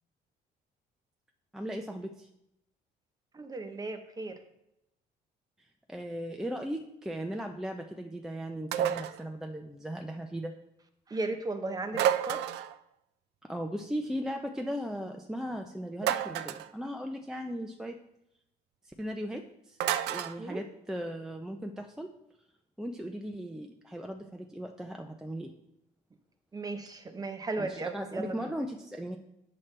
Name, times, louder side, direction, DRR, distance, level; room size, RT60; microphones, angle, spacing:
voice 1, 1.5-2.3 5.6-10.5 13.4-18.0 18.8-19.8 20.0-22.1 22.8-25.5 27.6-29.2, equal, 5° right, 4 dB, 0.5 m, -37 dB
voice 2, 3.3-4.4 11.1-12.5 20.4-20.6 26.5-28.5, right 3 dB, 20° right, 7 dB, 0.8 m, -36 dB
sound 1, 8.7-9.2 11.9-12.8 16.0-16.7 19.8-20.4, right 10 dB, 80° right, 0.4 m, -29 dB
8.6 x 5.8 x 3.3 m, 0.84 s
cardioid pair, 110°, 17 cm